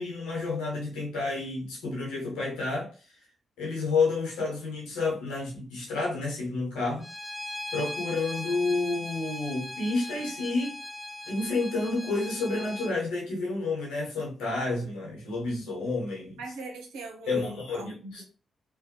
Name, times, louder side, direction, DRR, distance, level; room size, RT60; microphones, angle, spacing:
voice 1, 0.0-2.9 3.6-7.0 7.7-10.7 11.3-16.4 17.3-18.2, left 3 dB, 80° left, 1.0 m, -30 dB
Bowed string instrument, 7.0-12.9, left 1 dB, 15° left, 0.5 m, -39 dB
voice 2, 16.4-18.2, right 3 dB, 85° right, 0.5 m, -41 dB
2.5 x 2.1 x 2.7 m
hypercardioid pair, 40°, 0 cm